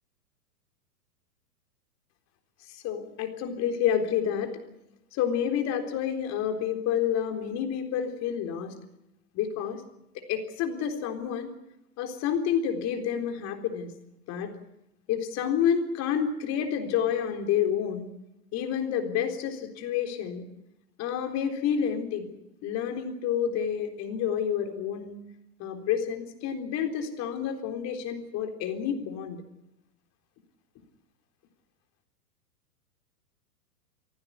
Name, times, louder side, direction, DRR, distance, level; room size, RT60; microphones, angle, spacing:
voice 1, 2.7-4.5 5.1-8.7 9.3-9.8 10.3-11.5 12.0-13.9 14.3-14.5 15.1-18.1 18.5-20.4 21.0-22.3 22.6-25.2 25.6-29.4, left 8 dB, 35° left, 5 dB, 3.9 m, -29 dB
23.5 x 16.0 x 9.7 m, 0.88 s
hypercardioid pair, 115°, 48 cm